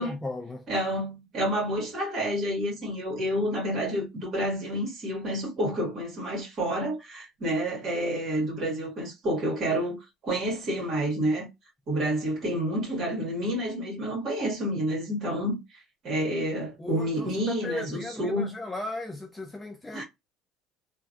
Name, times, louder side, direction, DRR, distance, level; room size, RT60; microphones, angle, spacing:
voice 1, 0.0-0.7 16.8-20.0, left 2 dB, 10° left, 0.3 m, -36 dB
voice 2, 0.7-11.5 11.9-15.6 16.0-18.5 19.9-20.0, equal, 35° right, 1.8 m, -29 dB
3.0 x 2.4 x 2.5 m
cardioid pair, 155°, 0 cm